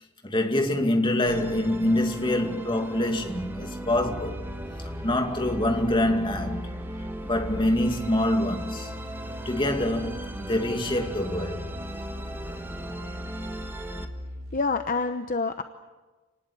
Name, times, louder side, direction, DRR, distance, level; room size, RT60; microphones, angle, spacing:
voice 1, 0.2-4.4 5.0-6.7 7.2-8.9 9.5-11.7, left 1 dB, 20° left, 2.3 m, -25 dB
Musical instrument, 1.3-14.1, right 1 dB, 10° right, 1.7 m, -38 dB
sound 1, 3.9-14.6, left 1 dB, 50° right, 7.3 m, -40 dB
voice 2, 14.5-15.6, left 4 dB, 40° left, 0.9 m, -27 dB
29.0 x 19.5 x 8.6 m
head